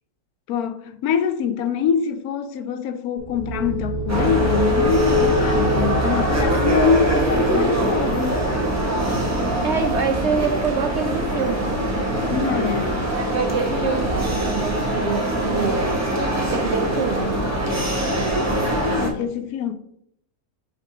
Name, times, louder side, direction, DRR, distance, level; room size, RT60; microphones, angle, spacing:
voice 1, 0.5-8.4 12.3-13.1 18.8-19.7, left 7 dB, 80° left, 1.1 m, -24 dB
sound 1, 3.2-14.7, equal, 35° right, 2.4 m, -27 dB
sound 2, 4.1-19.1, right 1 dB, 15° right, 0.9 m, -23 dB
voice 2, 9.6-11.7 13.1-15.8 16.5-17.3, right 5 dB, 60° right, 0.8 m, -25 dB
5.8 x 3.7 x 4.8 m
omnidirectional pair, 1.6 m